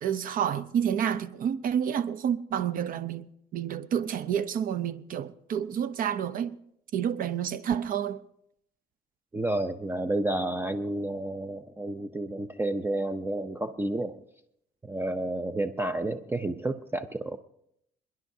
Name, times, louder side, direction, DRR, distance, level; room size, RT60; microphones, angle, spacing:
voice 1, 0.0-6.6 6.9-8.2, right 9 dB, 55° right, 0.6 m, -29 dB
voice 2, 9.3-14.2 14.8-17.4, right 1 dB, 15° right, 0.6 m, -30 dB
28.0 x 10.5 x 2.7 m
cardioid pair, 110°, 17 cm